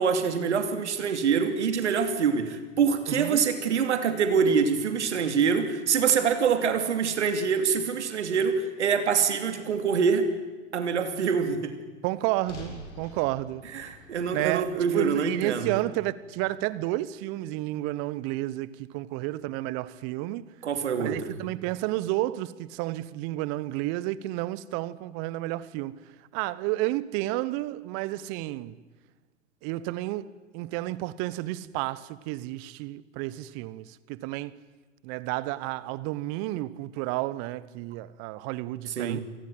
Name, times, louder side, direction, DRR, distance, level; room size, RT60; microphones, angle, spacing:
voice 1, 0.0-10.3 10.7-11.7 13.7-15.8 20.6-21.2 39.0-39.2, right 6 dB, 70° right, 2.8 m, -25 dB
voice 2, 3.1-3.4 12.0-13.7 14.3-20.4 21.0-28.8 29.6-34.6 35.0-39.2, right 17 dB, 40° right, 1.1 m, -31 dB
sound 1, 12.4-16.7, left 2 dB, 70° left, 6.9 m, -47 dB
27.0 x 19.5 x 7.9 m
figure-of-eight pair, 100°, 36 cm